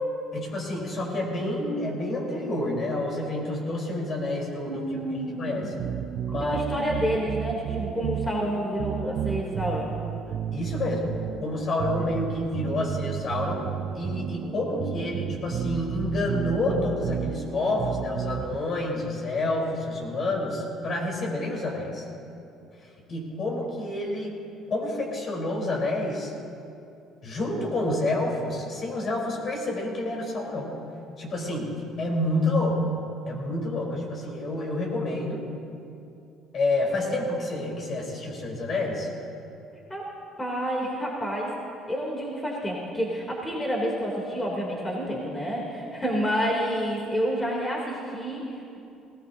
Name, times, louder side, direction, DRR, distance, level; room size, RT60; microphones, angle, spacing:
voice 1, 0.3-5.7 6.3-6.7 10.5-11.1 11.4-13.6 13.9-22.1 22.8-24.3 24.7-26.3 27.2-30.8 31.2-31.7 32.0-32.9 33.3-35.4 36.5-39.1, left 2 dB, 50° left, -2 dB, 4.2 m, -29 dB
voice 2, 4.6-5.7 6.4-9.9 39.9-40.1 40.4-41.5 41.9-48.8, equal, 20° left, -3 dB, 3.3 m, -29 dB
sound 1, 5.5-18.6, right 9 dB, 60° right, 0.5 m, -32 dB
19.5 x 16.5 x 2.9 m, 2.6 s
supercardioid pair, 75°, 0 cm